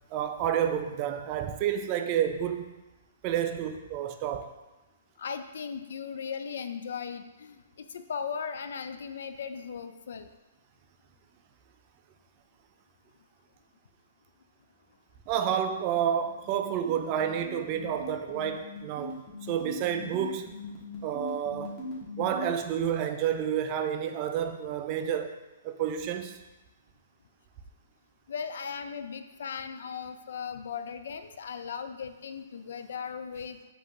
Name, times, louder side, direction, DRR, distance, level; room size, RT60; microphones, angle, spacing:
voice 1, 0.1-2.7 3.2-4.5 15.3-20.5 21.0-21.7 22.2-25.4 25.6-26.4, right 9 dB, 30° right, 0.3 m, -30 dB
voice 2, 5.2-10.3 28.3-33.6, left 6 dB, 70° left, 0.4 m, -37 dB
sound 1, 16.1-22.5, left 2 dB, 15° left, 1.2 m, -41 dB
5.0 x 2.9 x 3.6 m
hypercardioid pair, 160°, 0 cm